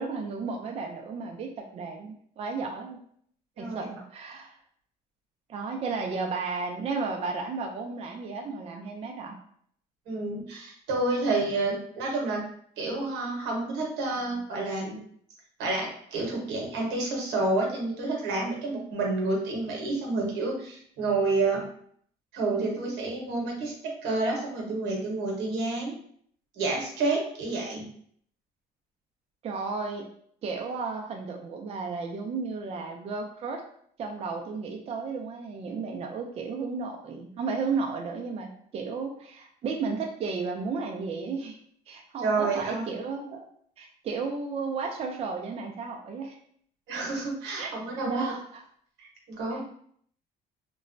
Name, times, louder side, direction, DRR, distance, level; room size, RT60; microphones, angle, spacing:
voice 1, 0.0-3.0 3.6-4.6 5.5-9.3 29.4-30.0 30.4-33.6 34.0-41.6 41.9-43.4 43.8-46.4 47.6-47.7 48.1-48.6 49.5-49.6, right 4 dB, 35° right, 2 dB, 0.4 m, -33 dB
voice 2, 10.1-12.4 12.8-15.0 15.6-21.6 22.3-26.0 26.6-27.8 42.2-42.8 46.9-48.3 49.0-49.6, right 3 dB, 90° right, 0 dB, 0.9 m, -29 dB
3.0 x 2.1 x 2.5 m, 0.63 s
cardioid pair, 110°, 17 cm